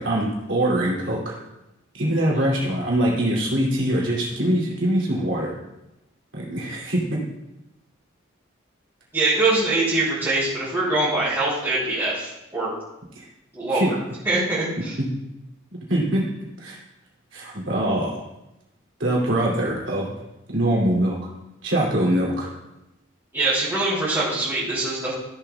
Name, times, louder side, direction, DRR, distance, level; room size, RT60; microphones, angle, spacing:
voice 1, 0.0-1.4 1.9-5.5 6.3-7.2 13.2-13.3 13.7-13.9 15.0-15.1 15.9-16.2 16.6-16.8 17.3-18.1 19.0-20.1 20.5-21.3 21.6-22.5, right 1 dB, 70° right, -4 dB, 2.8 m, -23 dB
voice 2, 9.1-12.7 13.5-13.9 14.2-15.0 23.3-25.1, right 2 dB, 15° right, -12 dB, 3.3 m, -23 dB
14.5 x 7.5 x 2.3 m, 0.91 s
head